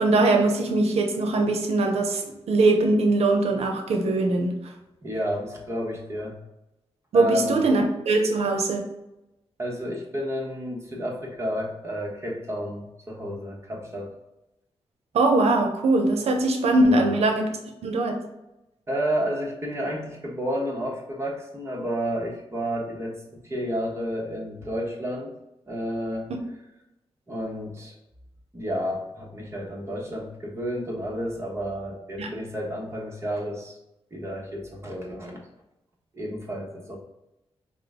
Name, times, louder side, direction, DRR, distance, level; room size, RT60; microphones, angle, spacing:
voice 1, 0.0-2.2 2.5-4.5 7.1-8.8 15.1-17.5 17.8-18.2 32.2-32.3, right 2 dB, 85° right, 3 dB, 0.7 m, -21 dB
voice 2, 5.0-6.4 7.1-7.6 9.6-14.1 16.8-17.1 18.9-25.3 25.7-26.3 27.3-27.9 28.5-33.8 34.1-35.4 36.1-37.0, equal, 25° right, -2 dB, 1.1 m, -31 dB
4.8 x 2.2 x 3.6 m, 0.93 s
cardioid pair, 90°, 10 cm